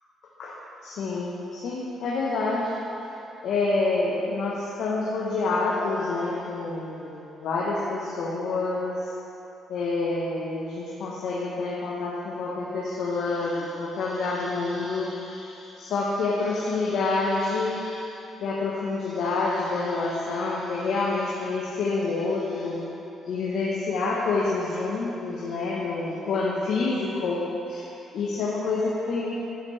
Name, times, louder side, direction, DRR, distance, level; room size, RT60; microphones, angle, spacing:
voice 1, 0.8-2.8 3.4-9.1 9.7-22.8 23.2-27.8 28.1-29.3, left 3 dB, 75° left, -5 dB, 1.0 m, -28 dB
10.5 x 6.8 x 3.3 m, 2.9 s
cardioid pair, 90°, 0 cm